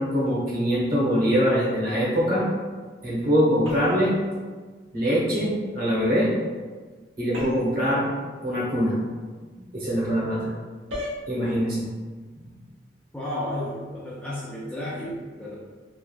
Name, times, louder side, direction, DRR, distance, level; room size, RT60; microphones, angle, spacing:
voice 1, 0.0-2.5 3.0-4.1 4.9-6.3 7.2-8.1 8.4-9.0 9.6-10.5 11.3-11.9 12.4-12.6, equal, 50° right, -7 dB, 0.9 m, -23 dB
sound 1, 3.6-4.1 7.3-7.8 10.9-11.2, left 1 dB, 85° right, 0.8 m, -33 dB
voice 2, 13.1-15.1 15.4-15.5, left 1 dB, 5° left, -8 dB, 0.4 m, -32 dB
3.2 x 2.3 x 2.3 m, 1.4 s
head